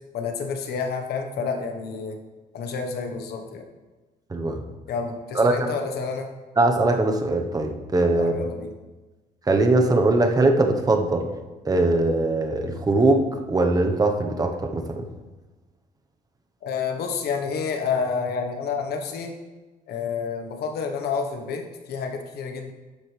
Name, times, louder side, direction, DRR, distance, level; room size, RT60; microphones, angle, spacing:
voice 1, 0.1-2.2 2.5-3.6 4.9-6.3 8.1-8.7 16.6-19.3 19.9-22.7, left 5 dB, 90° left, 5 dB, 1.3 m, -29 dB
voice 2, 4.3-4.6 5.3-5.8 6.6-8.4 9.5-11.3 11.6-15.0, right 2 dB, 25° right, 4 dB, 1.1 m, -21 dB
11.5 x 7.8 x 3.4 m, 1.2 s
cardioid pair, 115°, 16 cm